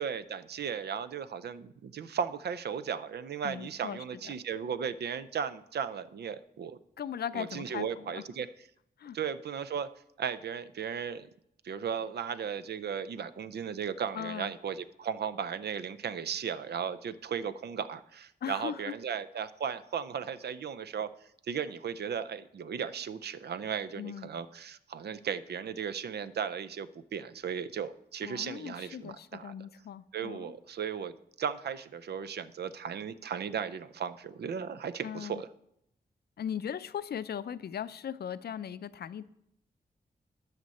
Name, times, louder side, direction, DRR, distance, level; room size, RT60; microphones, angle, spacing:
voice 1, 0.0-6.8 7.3-8.5 9.1-9.9 10.2-11.3 11.6-21.1 21.5-29.5 30.1-35.5, right 7 dB, 80° right, 0.5 m, -36 dB
voice 2, 3.4-4.0 4.2-4.4 7.0-8.2 9.0-9.2 14.1-14.5 18.4-18.9 24.0-24.3 28.2-30.5 35.0-35.4 36.4-39.3, left 9 dB, 75° left, 0.4 m, -38 dB
12.5 x 6.6 x 4.2 m
cardioid pair, 70°, 17 cm